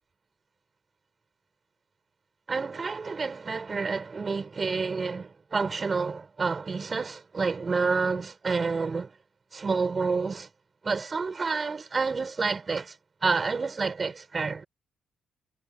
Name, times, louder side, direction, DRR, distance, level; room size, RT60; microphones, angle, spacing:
voice 1, 2.5-9.1 9.5-10.5 10.8-12.9 13.2-14.7, right 4 dB, 35° right, 6.4 m, -29 dB
cardioid pair, 90°, 0 cm